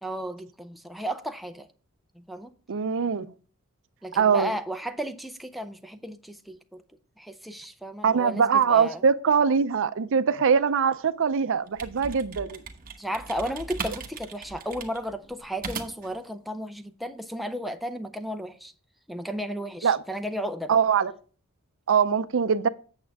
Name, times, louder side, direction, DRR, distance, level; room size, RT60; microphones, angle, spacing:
voice 1, 0.0-1.7 2.1-2.5 4.0-6.8 7.2-9.0 13.0-18.7 19.1-20.8, equal, ahead, 0.5 m, -34 dB
voice 2, 2.7-3.3 4.1-4.5 8.0-12.6 19.8-20.0 20.7-21.1 21.9-22.7, right 6 dB, 60° right, 0.5 m, -22 dB
sound 1, 11.5-16.2, right 5 dB, 40° right, 1.1 m, -38 dB
8.6 x 7.1 x 3.5 m
head